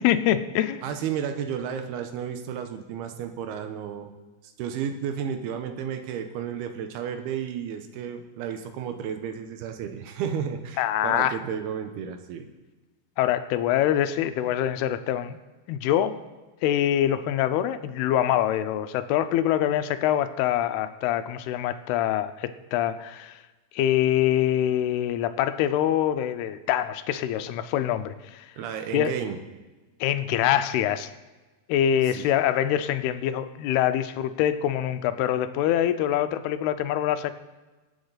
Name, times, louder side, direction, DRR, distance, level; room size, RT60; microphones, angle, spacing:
voice 1, 0.0-0.8 10.8-11.4 13.2-15.4 15.7-16.2 16.6-23.4 23.7-28.5 28.9-29.1 30.0-31.1 31.7-37.3, left 11 dB, 90° left, 11 dB, 2.7 m, -24 dB
voice 2, 0.8-4.1 4.4-12.5 28.6-29.4 32.1-32.3, right 8 dB, 85° right, 7 dB, 2.9 m, -32 dB
24.0 x 8.8 x 4.0 m, 1.2 s
omnidirectional pair, 4.5 m